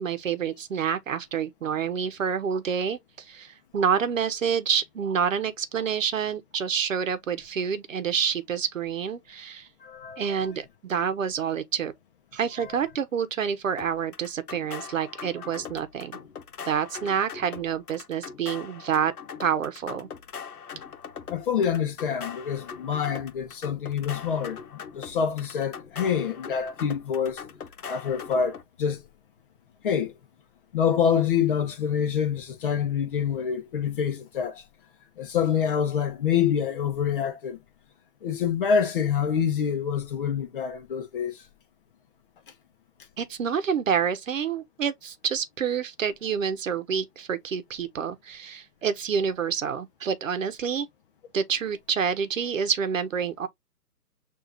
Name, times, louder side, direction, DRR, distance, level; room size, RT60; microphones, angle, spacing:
voice 1, 0.0-9.7 10.2-11.9 12.3-16.2 16.7-19.1 19.4-20.1 43.2-50.9 51.3-53.5, right 7 dB, 55° right, 1.0 m, -28 dB
voice 2, 9.8-10.2 21.3-27.4 27.9-29.0 29.8-30.1 30.7-34.6 35.2-37.6 38.2-41.4, left 7 dB, 35° left, 1.0 m, -26 dB
sound 1, 13.8-28.6, left 6 dB, 70° left, 1.1 m, -41 dB
6.6 x 2.7 x 2.7 m
figure-of-eight pair, 140°, 47 cm